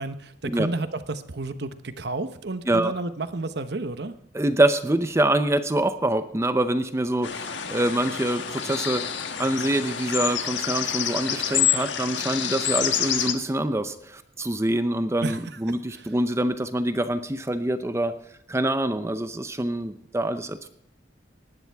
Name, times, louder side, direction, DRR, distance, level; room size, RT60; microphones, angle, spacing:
voice 1, 0.0-4.1 15.2-15.6 15.9-16.1, right 2 dB, 65° right, 11 dB, 1.0 m, -31 dB
voice 2, 4.3-18.1 18.5-20.7, right 1 dB, 15° right, 10 dB, 0.7 m, -25 dB
sound 1, 7.2-13.3, left 9 dB, 90° left, 1.3 m, -27 dB
19.0 x 12.0 x 3.5 m, 0.74 s
head